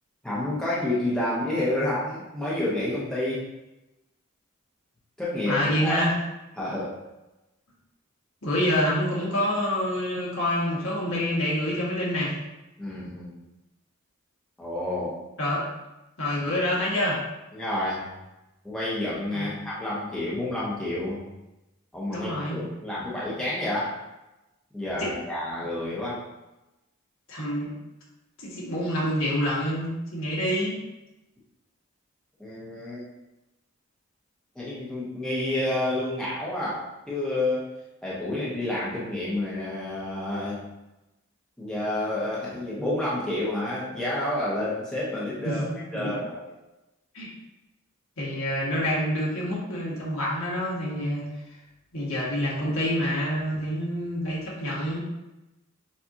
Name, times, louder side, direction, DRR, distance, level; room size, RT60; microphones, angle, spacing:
voice 1, 0.2-3.5 5.2-6.0 6.6-7.0 12.8-13.3 14.6-15.2 17.5-18.1 18.6-21.3 21.9-24.0 24.7-26.2 32.4-33.0 34.5-37.6 38.0-40.6 41.6-46.5, left 1 dB, 5° left, -8 dB, 0.8 m, -29 dB
voice 2, 5.4-6.1 8.4-12.3 15.4-15.6 16.2-17.2 19.3-19.5 22.1-22.6 25.0-25.1 27.3-27.7 28.4-30.8 45.4-45.6 45.9-46.1 47.1-47.3 48.2-51.2 51.9-55.0, equal, 65° left, -5 dB, 1.5 m, -27 dB
6.9 x 2.5 x 2.7 m, 1.0 s
head